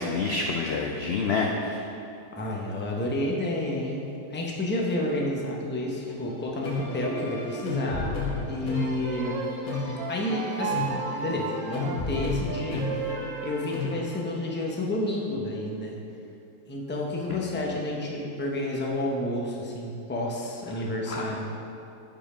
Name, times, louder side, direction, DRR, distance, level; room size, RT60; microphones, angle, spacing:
voice 1, 0.0-1.8 21.1-21.3, left 4 dB, 65° left, 0 dB, 0.6 m, -27 dB
voice 2, 2.4-4.0 4.3-8.2 8.5-9.5 10.1-13.0 13.4-16.0 16.7-21.5, left 1 dB, 10° left, -2 dB, 0.6 m, -30 dB
sound 1, 6.0-14.3, left 3 dB, 85° left, 1.7 m, -33 dB
Wind instrument woodwind instrument, 8.7-13.7, right 7 dB, 70° right, 0.9 m, -35 dB
6.9 x 5.4 x 5.0 m, 2.7 s
omnidirectional pair, 1.5 m